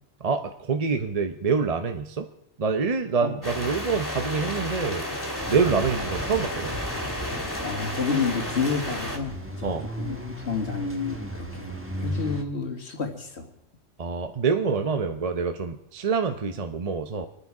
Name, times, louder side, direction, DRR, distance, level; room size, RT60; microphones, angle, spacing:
voice 1, 0.2-2.3 2.6-5.0 5.5-6.7 9.6-9.9 14.0-17.3, right 5 dB, 35° right, 7 dB, 0.7 m, -26 dB
sound 1, 3.4-9.2, left 1 dB, 15° left, 2.5 m, -32 dB
sound 2, 5.4-12.4, equal, 10° right, 1.3 m, -36 dB
voice 2, 7.6-10.2 10.5-13.5, left 5 dB, 60° left, 4 dB, 2.2 m, -30 dB
27.5 x 9.9 x 4.8 m, 0.74 s
omnidirectional pair, 1.3 m